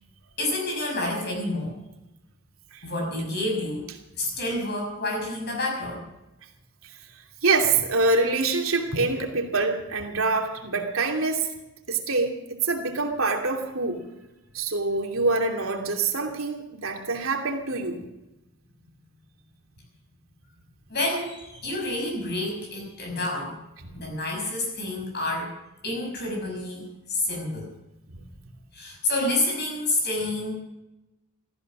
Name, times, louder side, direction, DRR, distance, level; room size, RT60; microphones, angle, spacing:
voice 1, 0.4-1.8 2.8-3.9 4.2-6.0 20.9-23.5 23.9-25.5 25.8-27.7 28.7-30.5, left 2 dB, 50° left, 0 dB, 6.0 m, -29 dB
voice 2, 7.4-11.5 11.9-14.1 14.5-18.0 23.8-23.9 28.1-28.2, right 3 dB, 80° right, 2 dB, 2.8 m, -25 dB
15.0 x 15.0 x 6.2 m, 0.96 s
head